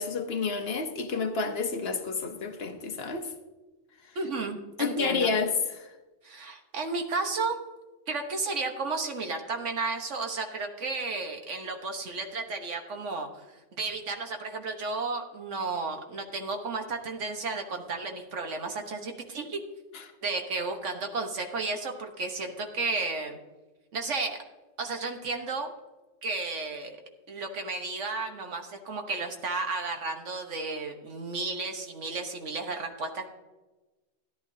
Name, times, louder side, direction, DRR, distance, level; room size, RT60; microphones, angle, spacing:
voice 1, 0.0-3.3 4.8-5.9 19.9-20.0, left 4 dB, 55° left, 6 dB, 1.0 m, -30 dB
voice 2, 4.1-5.3 6.2-7.6 8.1-13.3 13.8-19.6 20.2-23.4 23.9-24.4 24.8-25.7 26.2-27.0 27.3-33.3, right 3 dB, 75° right, 4 dB, 1.5 m, -33 dB
14.0 x 10.5 x 2.7 m, 1.1 s
omnidirectional pair, 1.3 m